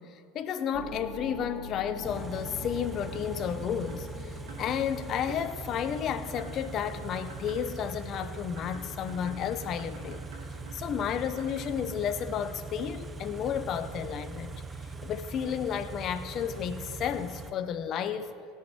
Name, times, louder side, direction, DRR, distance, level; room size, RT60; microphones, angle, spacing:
voice 1, 0.0-14.6 15.0-18.3, left 8 dB, 45° left, 0.9 m, -32 dB
sound 1, 0.7-7.0, left 2 dB, 15° left, 1.7 m, -44 dB
Car / Idling, 2.0-17.5, right 3 dB, 20° right, 0.9 m, -41 dB
sound 2, 3.1-3.4 3.9-4.1 4.5-4.7 5.3-5.4 6.4-7.7 8.2-11.8, right 4 dB, 80° right, 3.0 m, -50 dB
17.0 x 6.4 x 8.3 m
supercardioid pair, 105°, 0 cm